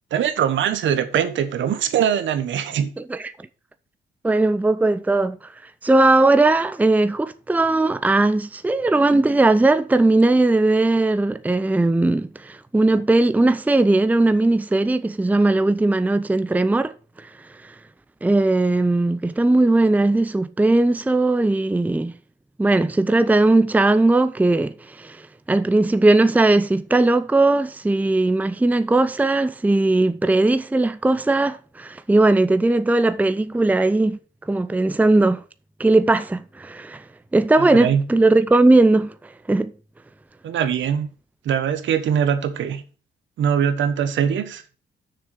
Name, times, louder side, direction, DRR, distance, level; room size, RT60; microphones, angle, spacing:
voice 1, 0.1-2.9 37.6-38.1 40.4-41.1 41.4-42.8 43.4-44.6, right 8 dB, 70° right, 1.3 m, -22 dB
voice 2, 3.0-3.3 4.2-5.4 5.8-16.9 17.2-17.3 18.2-22.1 22.6-25.2 25.5-34.2 34.5-35.4 35.8-37.0 37.3-39.1 39.5-39.7, right 2 dB, 10° right, 0.6 m, -18 dB
7.0 x 6.4 x 6.4 m
cardioid pair, 90°, 20 cm